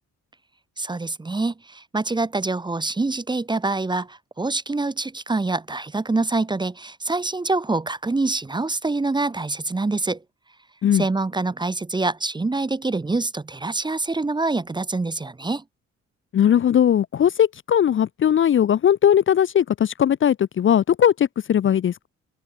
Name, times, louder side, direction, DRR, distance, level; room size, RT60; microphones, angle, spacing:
voice 1, 0.8-10.2 10.9-15.6, right 3 dB, 15° right, 0.8 m, -25 dB
voice 2, 16.3-22.1, left 9 dB, 40° left, 0.6 m, -19 dB
cardioid pair, 90°, 30 cm